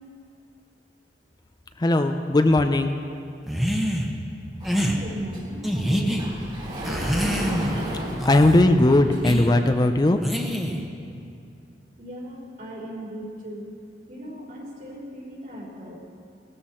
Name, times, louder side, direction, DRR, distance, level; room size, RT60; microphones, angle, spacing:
voice 1, 1.8-3.0 8.2-10.2, left 1 dB, 25° left, 7 dB, 0.5 m, -18 dB
sound 1, 3.5-4.1 4.6-5.0 5.6-6.2 6.8-7.8 8.2-8.6 9.2-9.5 10.2-10.8, equal, ahead, 1.1 m, -25 dB
Sliding door, 4.6-9.6, right 1 dB, 30° right, 2.8 m, -33 dB
voice 2, 4.7-6.3 12.0-13.7 14.1-16.0, equal, 50° right, -3 dB, 3.6 m, -38 dB
18.0 x 13.5 x 4.4 m, 2.4 s
head